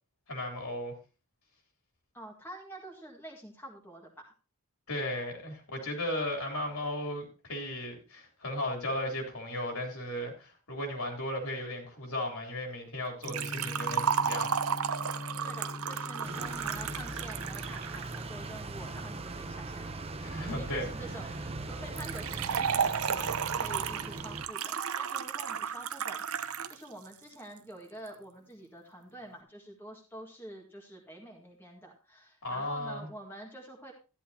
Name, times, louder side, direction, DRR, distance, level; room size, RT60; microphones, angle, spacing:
voice 1, 0.3-0.9 4.9-14.5 20.2-20.9 32.4-33.1, left 1 dB, 70° left, 3.4 m, -35 dB
voice 2, 2.1-4.3 15.4-33.9, right 1 dB, 10° left, 1.8 m, -47 dB
Gong, 13.2-21.3, left 2 dB, 25° left, 0.7 m, -44 dB
Liquid, 13.2-18.2 22.0-26.8 27.1-27.2 28.1-28.2, right 7 dB, 70° right, 0.7 m, -33 dB
sound 1, 16.2-24.5, right 2 dB, 25° right, 0.7 m, -40 dB
13.5 x 11.0 x 2.8 m
head